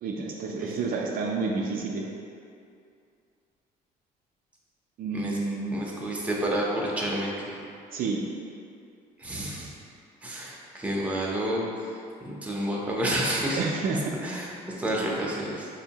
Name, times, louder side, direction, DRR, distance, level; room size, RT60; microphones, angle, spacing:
voice 1, 0.0-2.1 5.0-5.8 7.9-8.2 13.6-14.1, right 4 dB, 60° right, -1 dB, 0.4 m, -29 dB
voice 2, 5.7-7.6 9.2-9.7 10.2-11.6 12.2-13.6 14.2-15.7, right 1 dB, 10° right, -4 dB, 0.6 m, -29 dB
4.2 x 2.7 x 2.8 m, 2.4 s
cardioid pair, 110°, 17 cm